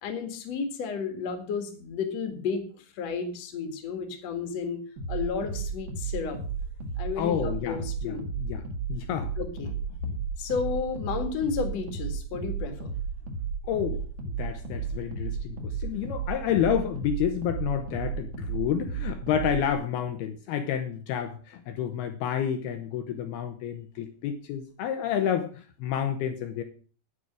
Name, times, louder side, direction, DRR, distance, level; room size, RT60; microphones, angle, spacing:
voice 1, 0.0-4.8 5.1-6.4 7.0-8.2 9.4-9.7 10.4-12.9, left 5 dB, 50° left, 6 dB, 2.0 m, -32 dB
sound 1, 5.0-19.7, right 5 dB, 55° right, 3.3 m, -34 dB
voice 2, 7.2-8.6 8.9-9.3 13.6-26.6, left 9 dB, 80° left, 8 dB, 2.3 m, -30 dB
9.9 x 9.9 x 6.2 m, 0.40 s
omnidirectional pair, 5.8 m